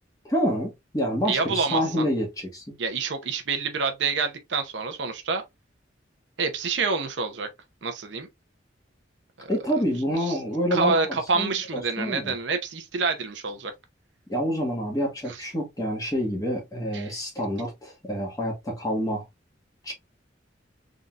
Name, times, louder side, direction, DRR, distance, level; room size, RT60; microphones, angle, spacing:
voice 1, 0.2-2.8 9.5-12.3 14.3-19.2 19.8-19.9, equal, 20° left, 1.7 m, -28 dB
voice 2, 1.3-2.1 2.8-5.4 6.4-7.5 7.8-8.3 9.4-9.5 10.2-10.4 10.7-13.7 15.3-15.4 16.9-17.2, right 4 dB, 70° right, 0.8 m, -27 dB
3.9 x 3.7 x 2.4 m
head